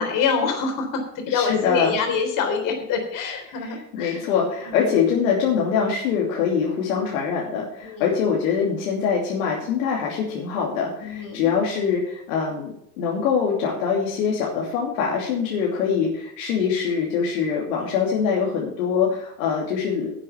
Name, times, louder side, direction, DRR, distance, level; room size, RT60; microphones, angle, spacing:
voice 1, 0.0-4.2 4.6-4.8 7.8-8.2 11.0-11.5, left 5 dB, 45° left, 4 dB, 3.7 m, -26 dB
voice 2, 1.3-1.9 3.6-20.1, left 6 dB, 60° left, -2 dB, 2.8 m, -24 dB
10.5 x 7.4 x 7.0 m, 0.71 s
hypercardioid pair, 85°, 45 cm